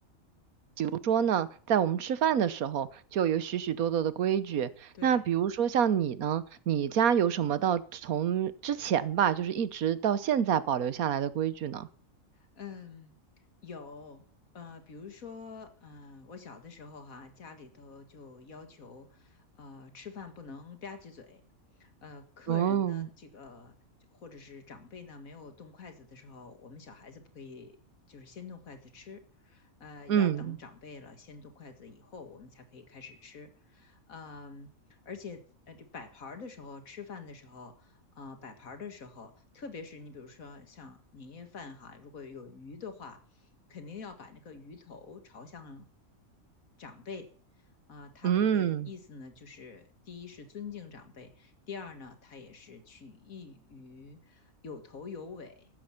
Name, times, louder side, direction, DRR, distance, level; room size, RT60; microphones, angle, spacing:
voice 1, 0.8-11.9 22.5-23.1 30.1-30.6 48.2-48.9, right 9 dB, 85° right, 1.4 m, -27 dB
voice 2, 12.5-13.2 13.6-14.2 14.5-21.4 21.8-23.8 24.1-27.8 28.1-43.2 43.7-45.9 46.8-47.3 47.9-55.7, left 5 dB, 75° left, 2.2 m, -46 dB
15.0 x 12.0 x 5.8 m
omnidirectional pair, 1.5 m